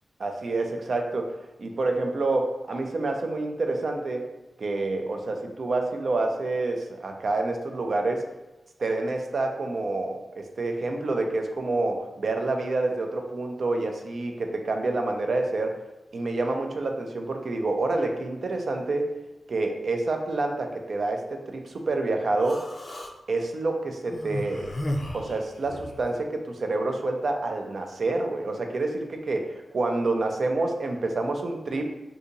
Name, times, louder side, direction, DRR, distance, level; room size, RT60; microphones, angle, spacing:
voice 1, 0.2-1.3 1.6-4.3 4.6-8.3 8.8-15.7 16.1-19.1 19.5-22.7 23.3-24.7 25.1-31.9, right 2 dB, 60° right, 3 dB, 0.4 m, -28 dB
Human voice, 22.4-23.1 24.1-26.0, left 1 dB, 40° left, 0.4 m, -34 dB
2.7 x 2.6 x 3.9 m, 1.1 s
wide cardioid pair, 85°, 0 cm